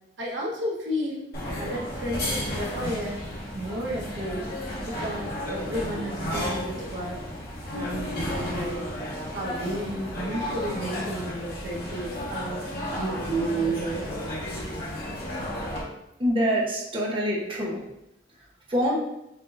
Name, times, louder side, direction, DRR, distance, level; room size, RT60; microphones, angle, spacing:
voice 1, 0.2-1.2 1.5-3.2 3.5-4.5 4.8-7.2 7.7-8.9 9.3-14.1, right 1 dB, 90° right, -4 dB, 1.2 m, -32 dB
sound 1, 1.3-15.8, left 1 dB, 60° left, 1.7 m, -33 dB
voice 2, 16.2-17.8 18.7-18.9, equal, 30° right, -3 dB, 1.0 m, -25 dB
7.2 x 2.7 x 2.6 m, 0.86 s
head